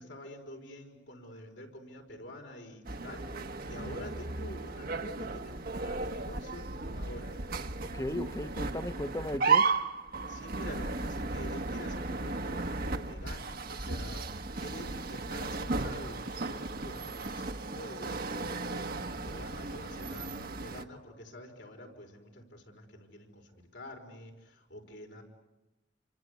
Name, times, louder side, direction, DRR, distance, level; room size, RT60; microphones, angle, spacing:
voice 1, 0.0-7.4 10.3-25.2, left 1 dB, 80° left, 2 dB, 5.1 m, -47 dB
sound 1, 2.9-20.8, right 4 dB, 55° right, 1.3 m, -35 dB
voice 2, 7.9-9.6, left 1 dB, 20° left, 11 dB, 1.0 m, -36 dB
28.5 x 25.0 x 8.2 m, 1.0 s
head